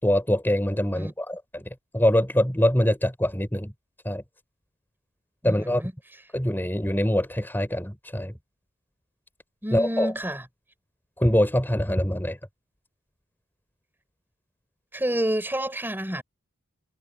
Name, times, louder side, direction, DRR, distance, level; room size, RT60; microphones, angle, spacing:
voice 1, 0.0-1.6 1.9-3.7 4.0-4.2 5.4-5.8 6.3-8.3 9.7-10.1 11.2-12.4, left 1 dB, 10° left, 4.2 m, -24 dB
voice 2, 5.4-5.9 9.6-10.4 14.9-16.2, right 1 dB, 10° right, 5.9 m, -29 dB
head